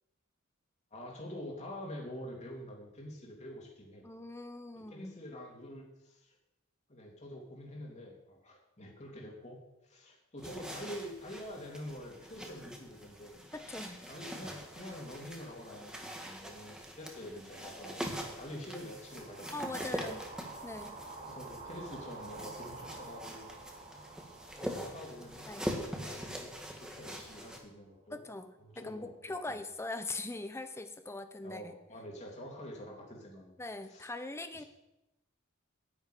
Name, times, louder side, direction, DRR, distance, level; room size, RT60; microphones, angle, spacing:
voice 1, 0.9-4.0 4.7-6.3 6.9-9.6 9.8-13.4 14.1-19.9 21.3-23.5 24.6-25.5 25.9-28.2 28.6-29.1 29.5-29.6 31.4-33.6 33.9-34.1 34.5-34.7, left 1 dB, 35° left, -1 dB, 3.0 m, -46 dB
voice 2, 4.0-5.2 13.5-14.0 19.5-20.3 20.6-20.9 25.5-25.7 28.1-31.8 33.6-34.6, left 2 dB, 15° left, 9 dB, 0.9 m, -41 dB
sound 1, 10.4-27.6, equal, 5° right, 1.7 m, -43 dB
sound 2, 19.0-27.2, right 3 dB, 35° right, 4.6 m, -49 dB
11.0 x 7.2 x 9.3 m, 0.92 s
head